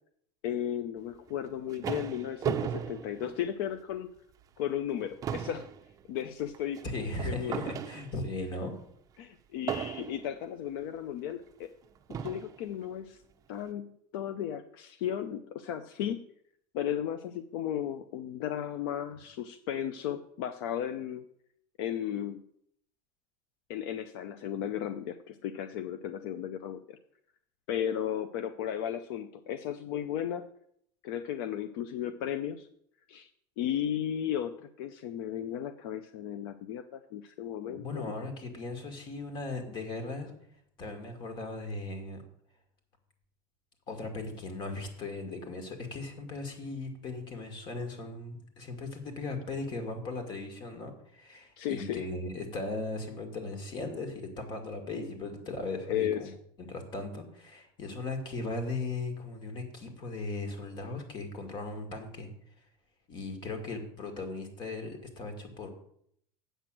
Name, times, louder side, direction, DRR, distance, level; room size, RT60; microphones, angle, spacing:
voice 1, 0.4-4.1 4.6-5.7 6.1-6.8 7.2-7.6 9.2-11.7 12.1-13.2 13.5-16.2 16.7-21.2 21.8-22.4 23.7-27.0 27.7-30.5 31.0-32.7 33.1-33.3 33.6-38.1 51.6-52.1 55.9-56.3, left 10 dB, 70° left, 11 dB, 0.6 m, -35 dB
sound 1, 1.3-4.0 4.4-4.6 4.9-8.4 9.7-10.4 11.3-11.4 12.1-12.6, right 8 dB, 25° right, 0.6 m, -37 dB
voice 2, 6.8-8.7 37.7-40.3 40.8-42.2 43.9-56.3 56.6-62.3 63.1-65.7, left 2 dB, 35° left, 6 dB, 2.2 m, -38 dB
8.1 x 6.1 x 7.6 m, 0.68 s
supercardioid pair, 145°, 13 cm